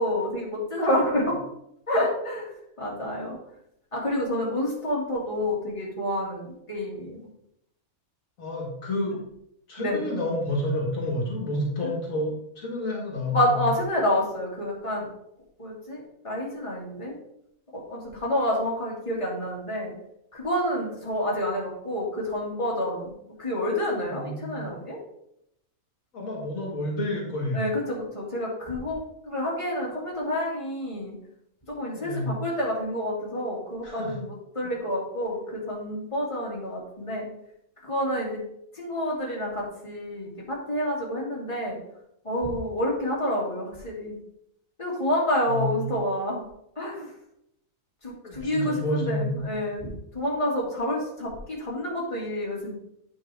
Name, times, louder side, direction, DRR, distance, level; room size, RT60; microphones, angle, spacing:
voice 1, 0.0-1.4 1.9-2.5 2.8-3.4 3.9-7.2 9.8-10.0 13.3-15.1 15.6-17.2 17.7-19.9 20.3-23.1 23.4-25.0 27.5-31.1 31.8-34.3 34.5-37.3 37.8-38.4 38.7-41.8 42.2-44.2 44.8-46.4 46.8-47.1 48.0-49.9 50.1-52.8, left 1 dB, 20° left, -4 dB, 2.3 m, -28 dB
voice 2, 8.4-9.2 9.7-13.7 24.1-24.7 26.1-27.6 32.0-32.3 33.8-34.2 34.6-34.7 45.4-45.9 48.2-49.5, left 1 dB, 70° left, -2 dB, 2.0 m, -30 dB
9.0 x 5.6 x 3.5 m, 0.77 s
omnidirectional pair, 1.5 m